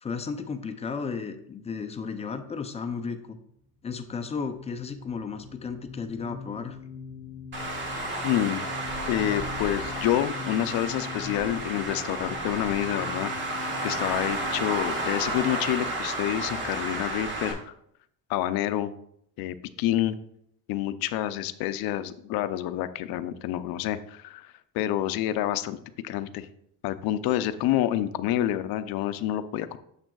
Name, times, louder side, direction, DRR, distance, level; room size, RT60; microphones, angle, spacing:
voice 1, 0.0-3.4 3.8-6.8, left 5 dB, 20° left, 7 dB, 0.4 m, -34 dB
sound 1, 4.1-16.3, left 6 dB, 15° right, 2.2 m, -43 dB
Traffic noise roadway noise, 7.5-17.5, right 2 dB, 30° right, 1.5 m, -32 dB
voice 2, 8.2-8.6 9.1-13.3 13.8-17.7 18.3-18.9 19.4-20.2 20.7-25.8 26.0-26.5 26.8-29.8, left 12 dB, 75° left, 12 dB, 0.6 m, -28 dB
8.9 x 6.8 x 2.3 m, 0.72 s
cardioid pair, 150°, 37 cm